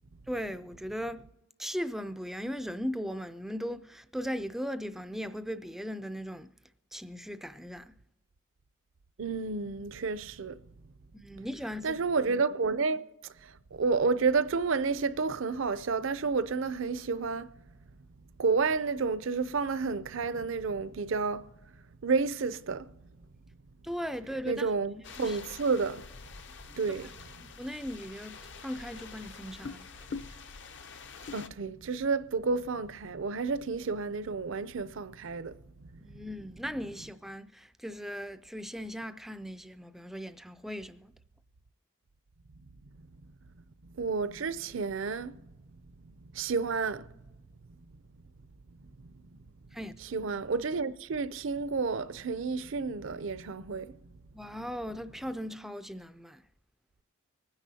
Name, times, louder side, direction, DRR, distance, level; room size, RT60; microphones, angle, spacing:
voice 1, 0.3-1.2 1.6-6.5 6.9-8.0 11.1-12.0 23.8-24.7 24.9-25.4 27.0-27.1 27.4-30.1 36.0-41.1 49.7-50.0 54.3-56.4, equal, ahead, 0.3 m, -38 dB
voice 2, 9.2-10.6 11.8-13.0 13.7-17.5 18.4-21.4 22.0-22.9 24.5-26.0 26.8-27.1 31.3-35.5 44.0-45.4 46.3-47.1 50.1-54.0, right 4 dB, 70° right, 0.5 m, -30 dB
sound 1, 25.0-31.5, left 5 dB, 60° left, 0.7 m, -45 dB
25.0 x 9.8 x 2.8 m
head